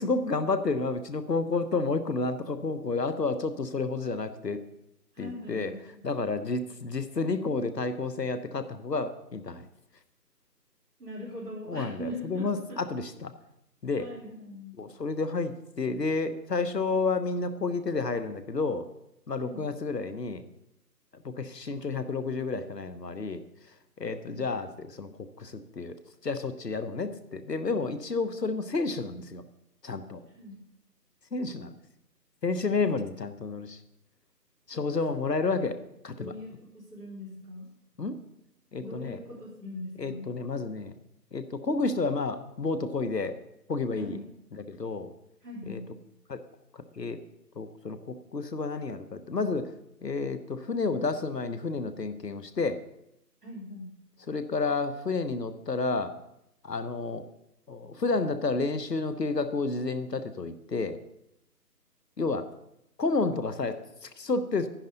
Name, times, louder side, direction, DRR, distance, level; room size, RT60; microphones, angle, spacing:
voice 1, 0.0-4.6 5.2-5.7 6.0-9.7 11.7-13.3 13.8-14.1 14.8-18.9 19.3-20.4 21.1-23.4 24.0-26.0 26.2-29.4 29.8-30.2 31.3-31.7 32.4-33.8 34.7-35.8 36.0-36.3 38.0-38.2 38.7-39.2 40.0-40.9 41.3-43.3 43.7-44.2 44.5-45.1 45.7-45.8 46.3-46.4 46.7-47.2 47.6-49.7 50.0-52.8 54.3-56.1 56.6-57.3 57.7-61.0 62.2-62.5 63.0-63.8 64.0-64.7, left 3 dB, 75° left, 11 dB, 1.1 m, -30 dB
voice 2, 5.1-6.0 11.0-12.8 14.0-14.8 19.4-19.7 24.3-24.5 30.3-30.6 34.9-35.0 36.2-37.7 38.8-40.3 44.0-44.3 45.4-45.9 53.4-53.9, left 1 dB, 65° right, -7 dB, 3.8 m, -41 dB
11.0 x 10.5 x 4.0 m, 0.83 s
figure-of-eight pair, 165°, 49 cm